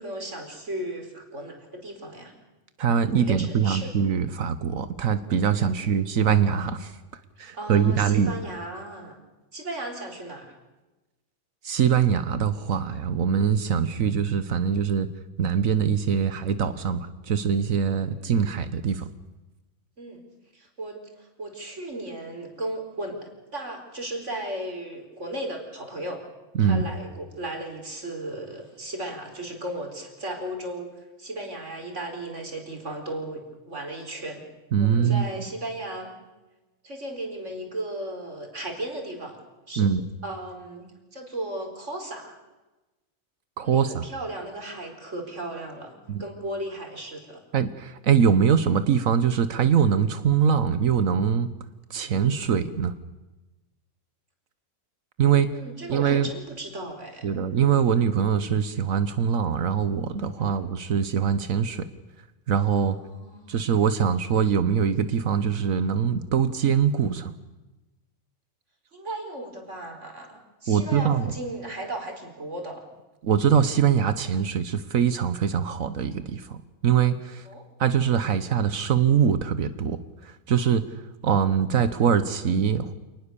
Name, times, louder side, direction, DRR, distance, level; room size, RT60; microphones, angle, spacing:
voice 1, 0.0-2.3 3.1-3.9 5.6-5.9 7.4-9.1 9.5-10.5 18.0-18.5 20.0-20.2 20.5-26.2 26.6-34.4 34.8-36.1 36.8-39.4 39.7-39.9 40.2-42.3 43.6-47.4 55.4-57.3 60.4-60.6 62.9-63.6 68.9-72.8 77.4-77.7, right 1 dB, 60° right, 3 dB, 4.7 m, -36 dB
voice 2, 2.8-7.0 7.4-8.3 11.6-15.1 15.4-19.1 26.5-26.8 34.7-35.2 39.8-40.0 43.6-44.0 46.1-46.2 47.5-51.5 51.9-52.9 55.2-55.5 55.9-56.3 57.2-61.9 62.5-63.0 63.5-67.3 70.7-71.3 73.2-76.6 76.8-77.4 77.8-80.8 81.2-82.9, right 7 dB, 80° right, 12 dB, 1.4 m, -23 dB
27.5 x 20.0 x 7.0 m, 1.1 s
omnidirectional pair, 1.4 m